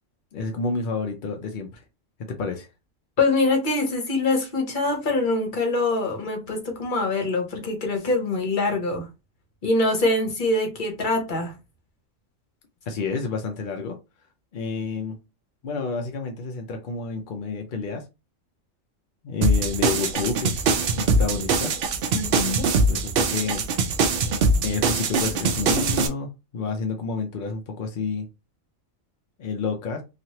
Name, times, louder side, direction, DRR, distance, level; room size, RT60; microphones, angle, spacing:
voice 1, 0.3-1.8 2.3-2.7 12.9-14.0 14.5-15.2 15.6-18.0 19.2-20.6 21.0-21.7 22.9-23.6 24.6-28.3 29.4-30.0, left 4 dB, 60° left, 0.5 m, -29 dB
voice 2, 3.2-9.1 9.6-11.5 22.1-22.7, left 2 dB, 40° left, 0.9 m, -24 dB
sound 1, 19.4-26.1, right 3 dB, 65° right, 0.6 m, -22 dB
3.0 x 2.4 x 2.7 m
omnidirectional pair, 1.4 m